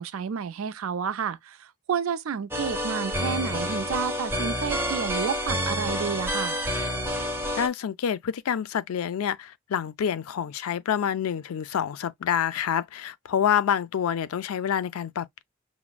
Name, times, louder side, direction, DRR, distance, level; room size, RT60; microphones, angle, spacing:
voice 1, 0.0-6.6, right 6 dB, 70° right, 0.4 m, -30 dB
sound 1, 2.5-7.7, equal, 10° right, 0.6 m, -29 dB
voice 2, 7.6-15.4, left 8 dB, 80° left, 0.4 m, -27 dB
5.9 x 2.0 x 2.3 m
head